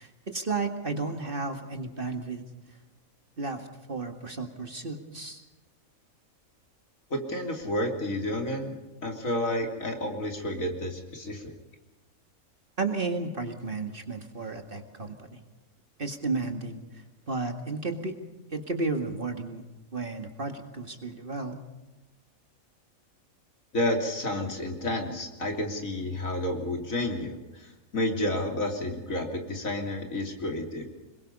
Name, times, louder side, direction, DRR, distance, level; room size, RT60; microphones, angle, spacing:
voice 1, 0.0-2.4 3.4-5.4 12.8-15.4 16.0-16.8 17.3-18.2 18.5-19.6 19.9-21.6, right 3 dB, 40° right, 5 dB, 2.2 m, -33 dB
voice 2, 7.1-8.8 9.0-11.5 23.7-30.9, left 1 dB, 70° left, 3 dB, 3.6 m, -30 dB
26.5 x 22.0 x 5.5 m, 1.1 s
omnidirectional pair, 1.5 m